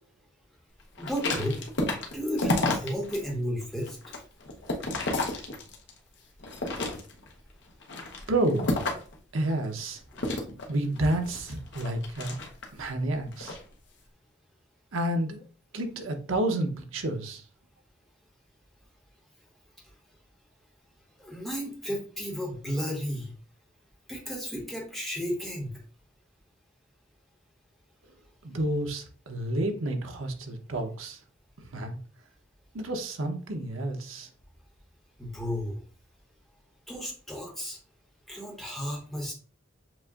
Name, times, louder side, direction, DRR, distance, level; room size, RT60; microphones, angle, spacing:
sound 1, 1.0-3.2 3.6-6.0 6.4-7.3 7.8-9.2 10.2-12.8 13.3-13.6, left 2 dB, 60° left, 0.8 m, -31 dB
voice 1, 1.0-1.6 2.1-4.0 21.2-23.3 24.1-25.8 35.2-35.8 36.9-37.8 38.3-39.3, equal, ahead, -3 dB, 1.3 m, -33 dB
voice 2, 8.3-9.0 9.3-10.0 10.7-12.4 12.7-13.6 14.9-15.4 15.7-17.4 28.4-31.2 31.6-32.0 32.7-34.3, right 1 dB, 90° right, 4 dB, 0.8 m, -30 dB
7.4 x 2.5 x 2.4 m, 0.40 s
head